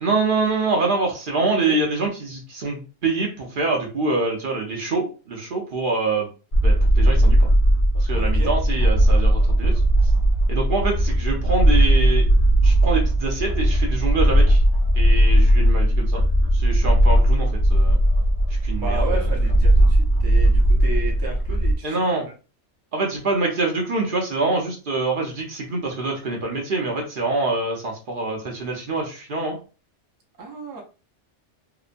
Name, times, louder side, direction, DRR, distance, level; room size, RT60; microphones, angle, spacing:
voice 1, 0.0-6.3 6.6-7.5 7.9-9.8 10.5-12.3 12.6-14.6 14.9-16.2 16.5-18.0 18.6-19.3 21.8-22.3 22.9-29.6, right 3 dB, 55° right, 1 dB, 0.7 m, -25 dB
sound 1, 6.5-21.8, right 1 dB, 50° left, 1.0 m, -17 dB
voice 2, 8.2-8.5 18.7-22.0 22.3-22.4 30.4-30.8, right 4 dB, 30° right, 0 dB, 0.4 m, -33 dB
2.9 x 2.1 x 2.4 m, 0.34 s
omnidirectional pair, 1.2 m